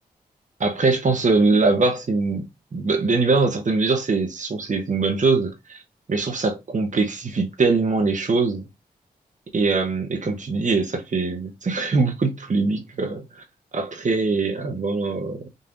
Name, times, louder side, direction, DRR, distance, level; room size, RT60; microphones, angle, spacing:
voice 1, 0.6-2.4 2.7-5.8 6.1-8.6 9.5-13.4 13.7-15.5, right 3 dB, 50° right, 1.1 m, -22 dB
4.0 x 2.8 x 3.7 m
cardioid pair, 45°, 17 cm